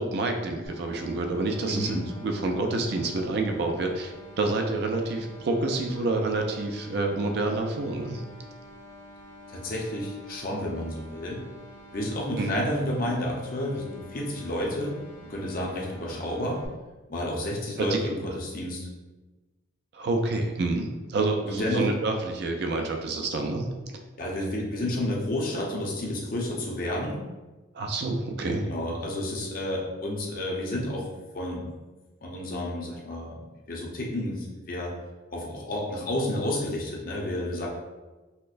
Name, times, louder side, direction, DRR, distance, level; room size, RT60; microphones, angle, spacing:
voice 1, 0.0-8.2 12.4-12.6 17.8-18.0 19.9-23.7 27.7-28.6, right 2 dB, 55° right, 3 dB, 0.4 m, -28 dB
sound 1, 0.7-16.7, left 1 dB, 80° left, 0.8 m, -48 dB
voice 2, 1.7-2.0 9.5-11.4 11.9-15.0 15.2-16.6 17.1-18.9 21.5-21.9 24.2-27.2 28.6-31.1 31.3-31.7 32.2-33.4 33.7-35.0 35.3-37.7, left 1 dB, 45° left, -2 dB, 0.6 m, -30 dB
4.3 x 2.1 x 2.4 m, 1.2 s
head